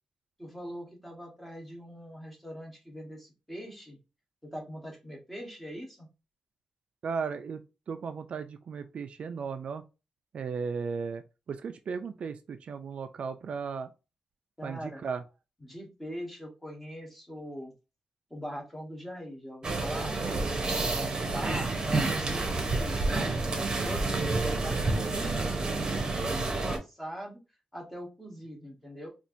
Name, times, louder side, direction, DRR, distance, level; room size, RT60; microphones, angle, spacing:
voice 1, 0.4-4.0 4.4-6.1 14.6-15.0 15.6-17.7 18.3-20.2 21.2-27.4 27.7-29.1, equal, 5° left, 1.0 m, -42 dB
voice 2, 7.0-7.6 7.9-9.8 10.3-11.2 11.5-13.9 14.6-15.2, right 5 dB, 60° right, 0.3 m, -35 dB
sound 1, 19.6-26.8, right 3 dB, 35° right, 0.8 m, -29 dB
4.3 x 2.5 x 2.6 m
wide cardioid pair, 170°, 2 cm